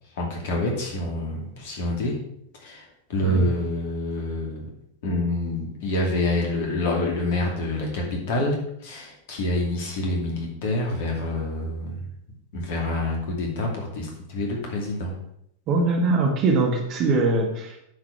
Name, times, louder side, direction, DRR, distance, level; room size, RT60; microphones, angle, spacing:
voice 1, 0.2-2.1 2.6-2.8 3.1-4.7 5.0-8.6 8.8-12.0 12.5-15.1, left 1 dB, 50° left, 0 dB, 2.6 m, -27 dB
voice 2, 15.7-17.8, right 3 dB, 35° right, 2 dB, 1.9 m, -22 dB
9.6 x 4.8 x 6.1 m, 0.74 s
figure-of-eight pair, 90°, 0 cm